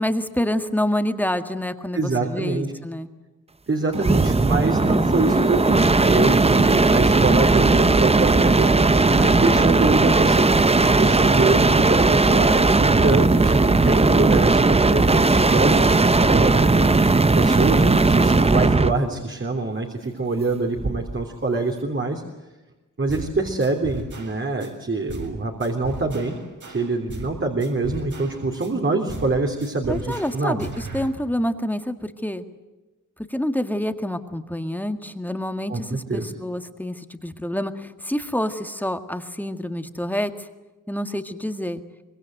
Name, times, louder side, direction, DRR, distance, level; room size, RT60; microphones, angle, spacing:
voice 1, 0.0-3.1 29.9-32.4 33.3-40.5 40.9-41.8, left 1 dB, 5° left, 7 dB, 1.8 m, -27 dB
voice 2, 1.9-2.7 3.7-22.2 23.0-26.3 26.7-30.6 35.7-36.3, right 3 dB, 40° right, 2 dB, 3.5 m, -25 dB
sound 1, 3.9-19.0 20.8-21.2, right 3 dB, 20° right, 0.8 m, -17 dB
sound 2, 23.1-23.3 23.6-24.7 25.1-25.3 25.6-27.3 27.6-28.7 29.1-29.3 29.6-31.1, right 2 dB, 70° right, 7.2 m, -36 dB
25.0 x 24.5 x 8.0 m, 1.1 s
wide cardioid pair, 140°, 32 cm